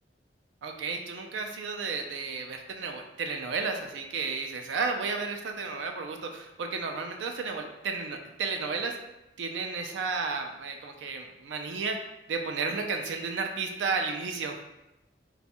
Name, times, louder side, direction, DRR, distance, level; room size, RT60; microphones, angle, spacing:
voice 1, 0.6-9.0 9.4-14.6, right 4 dB, 85° right, 4 dB, 0.4 m, -33 dB
2.6 x 2.3 x 4.1 m, 0.95 s
head